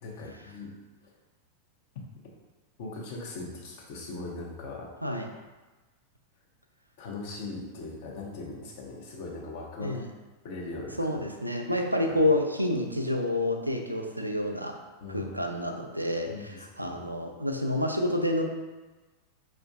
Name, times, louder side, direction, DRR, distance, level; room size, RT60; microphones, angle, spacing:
voice 1, 0.0-0.7 1.0-1.1 2.8-4.9 7.0-10.0 10.4-11.2 15.0-15.4 16.3-17.0, left 3 dB, 50° left, -2 dB, 0.7 m, -40 dB
voice 2, 11.0-14.8 15.1-18.4, left 1 dB, 85° right, 3 dB, 0.3 m, -28 dB
4.4 x 2.4 x 2.3 m, 1.2 s
figure-of-eight pair, 90°, 0 cm